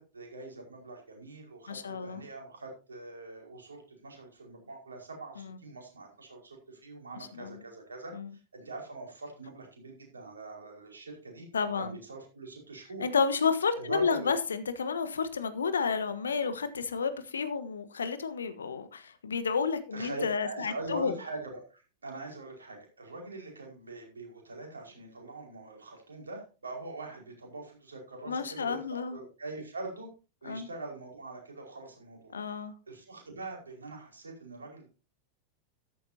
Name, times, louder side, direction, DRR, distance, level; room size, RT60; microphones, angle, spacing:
voice 1, 0.0-8.1 8.5-11.5 11.8-13.1 13.7-14.3 19.9-30.1 30.4-32.3 32.9-34.9, right 2 dB, 75° right, 5.1 m, -43 dB
voice 2, 1.7-2.2 7.3-7.5 8.1-8.3 11.5-11.9 13.0-21.1 28.3-29.2 30.4-30.7 32.3-32.7, left 5 dB, 70° left, 1.2 m, -31 dB
13.5 x 12.0 x 2.8 m
figure-of-eight pair, 90°, 0 cm